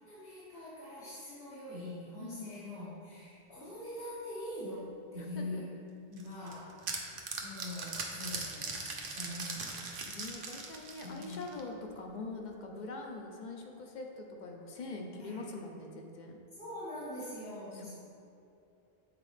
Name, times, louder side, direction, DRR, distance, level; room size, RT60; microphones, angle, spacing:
voice 1, 0.0-4.9 5.1-5.7 6.1-6.7 7.4-10.0 11.0-11.5 15.2-15.5 16.6-17.9, left 1 dB, 75° left, -12 dB, 1.6 m, -43 dB
voice 2, 2.2-2.5 5.2-5.6 10.1-16.4 17.7-17.9, left 3 dB, 55° left, 2 dB, 0.7 m, -43 dB
sound 1, 6.2-11.7, right 4 dB, 65° right, 0.8 m, -40 dB
7.6 x 4.0 x 3.2 m, 2.7 s
omnidirectional pair, 1.0 m